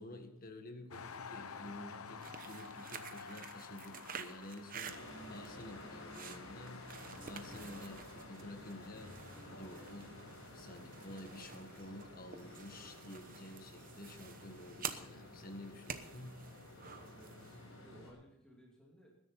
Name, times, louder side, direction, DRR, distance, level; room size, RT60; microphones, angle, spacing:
voice 1, 0.0-5.0 5.3-9.1 9.5-10.2 10.5-16.5, left 1 dB, 40° left, 6 dB, 1.7 m, -51 dB
sound 1, 0.9-13.7 14.4-14.5, left 5 dB, 85° left, 0.9 m, -53 dB
sound 2, 2.1-17.7, right 7 dB, 40° right, 0.9 m, -50 dB
sound 3, 4.8-18.1, left 1 dB, 65° left, 5.9 m, -52 dB
voice 2, 17.2-19.2, equal, 5° left, -4 dB, 2.6 m, -61 dB
20.5 x 10.5 x 4.2 m, 0.85 s
head